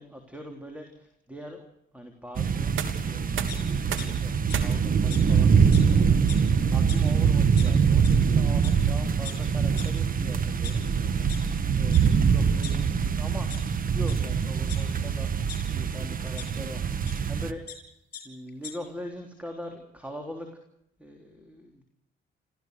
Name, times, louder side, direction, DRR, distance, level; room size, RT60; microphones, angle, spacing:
voice 1, 0.0-1.6 1.9-2.7 3.0-6.1 6.4-10.8 11.8-13.5 13.9-15.3 15.7-17.6 18.2-20.5 21.0-21.8, equal, 5° right, 4 dB, 3.6 m, -41 dB
sound 1, 2.4-17.5, right 6 dB, 45° right, 1.4 m, -24 dB
sound 2, 2.5-14.3, right 8 dB, 80° right, 3.1 m, -43 dB
sound 3, 3.5-4.1 4.5-4.6 5.1-5.2 5.7-5.8 6.1-6.5 6.9-7.0 7.6-7.7 8.0-8.2 8.6-8.7 9.2-9.3 9.8-9.9 10.4-11.4 11.9-12.0 12.4-13.1 13.5-13.6 14.0-14.2 14.7-15.6 16.4-16.5 17.1-17.2 17.4-17.8 18.1-18.2 18.5-18.7, left 8 dB, 55° left, 6.3 m, -40 dB
29.0 x 15.0 x 6.6 m, 0.78 s
cardioid pair, 90°, 20 cm